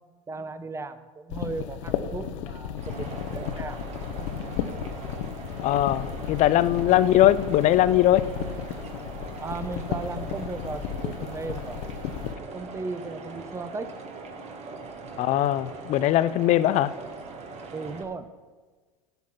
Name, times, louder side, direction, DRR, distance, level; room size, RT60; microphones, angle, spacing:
voice 1, 0.3-3.8 9.4-11.9 12.4-13.9 17.7-18.3, right 3 dB, 15° right, 11 dB, 0.9 m, -36 dB
sound 1, 1.3-12.3, left 9 dB, 70° left, 1.0 m, -34 dB
sound 2, 2.8-18.0, right 3 dB, 40° right, 1.6 m, -41 dB
voice 2, 5.6-8.2 15.2-16.9, left 13 dB, 45° left, 16 dB, 0.6 m, -21 dB
16.0 x 5.9 x 5.8 m, 1.4 s
hypercardioid pair, 95°, 16 cm